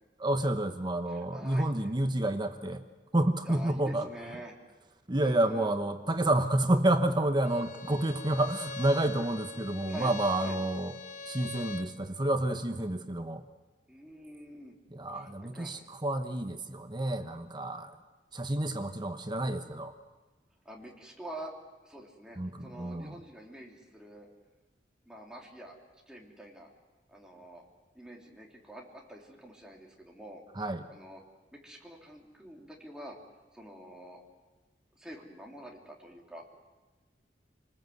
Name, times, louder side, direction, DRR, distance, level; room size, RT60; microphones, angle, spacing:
voice 1, 0.2-2.8 3.1-4.0 5.1-10.9 11.3-13.4 14.9-17.9 18.3-19.9 22.4-23.2 30.6-30.8, right 1 dB, 25° right, 7 dB, 1.1 m, -29 dB
voice 2, 1.1-1.7 3.4-4.5 5.2-5.7 9.9-10.6 13.9-14.7 15.1-15.8 20.6-21.5 21.8-24.3 25.0-25.8 26.1-26.7 27.1-27.6 27.9-30.4 30.9-31.2 31.5-33.2 33.5-34.2 34.9-36.4, right 1 dB, 5° right, -1 dB, 3.3 m, -47 dB
Bowed string instrument, 7.4-12.0, left 4 dB, 45° left, 1.1 m, -43 dB
27.5 x 20.0 x 7.9 m, 1.2 s
head